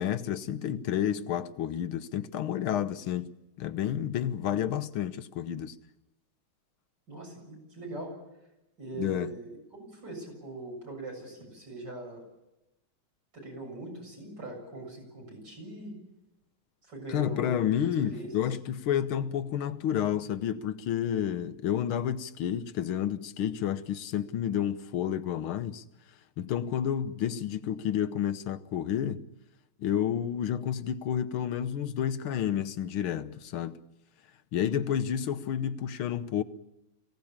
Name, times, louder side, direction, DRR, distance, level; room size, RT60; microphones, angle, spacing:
voice 1, 0.0-3.3 3.6-5.8 9.0-9.3 17.1-25.8 26.4-29.3 29.8-33.8 34.5-36.4, left 9 dB, 85° left, 1.8 m, -30 dB
voice 2, 7.1-8.1 8.8-9.5 9.8-12.2 13.3-15.9 16.8-17.7 18.0-18.4, right 2 dB, 55° right, 8.0 m, -41 dB
23.5 x 17.5 x 8.8 m
omnidirectional pair, 2.2 m